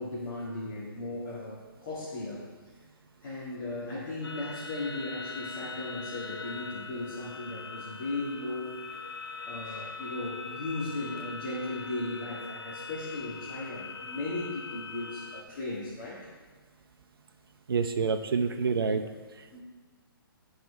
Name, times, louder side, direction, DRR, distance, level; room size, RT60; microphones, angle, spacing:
voice 1, 0.0-2.4 3.2-8.7 9.4-16.3 19.5-19.6, left 2 dB, 55° left, -7 dB, 2.0 m, -36 dB
sound 1, 4.2-15.4, left 4 dB, 80° left, 0.7 m, -41 dB
voice 2, 17.7-19.0 19.4-19.6, right 5 dB, 75° right, 6 dB, 0.5 m, -28 dB
12.0 x 4.5 x 3.3 m, 1.4 s
hypercardioid pair, 135°, 12 cm